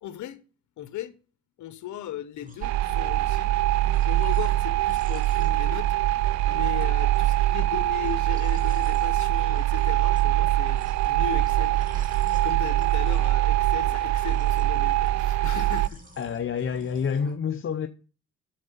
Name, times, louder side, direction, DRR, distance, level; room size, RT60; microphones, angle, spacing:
voice 1, 0.0-0.4 0.8-1.2 1.6-3.6 4.0-6.0 6.5-11.8 12.0-12.1 12.4-16.0, left 10 dB, 75° left, 0.9 m, -37 dB
sound 1, 2.4-17.4, equal, 25° right, 2.8 m, -50 dB
sound 2, 2.6-15.9, right 14 dB, 65° right, 0.5 m, -23 dB
voice 2, 16.2-17.9, left 7 dB, 45° left, 0.7 m, -28 dB
8.7 x 6.7 x 5.5 m
cardioid pair, 90°, 30 cm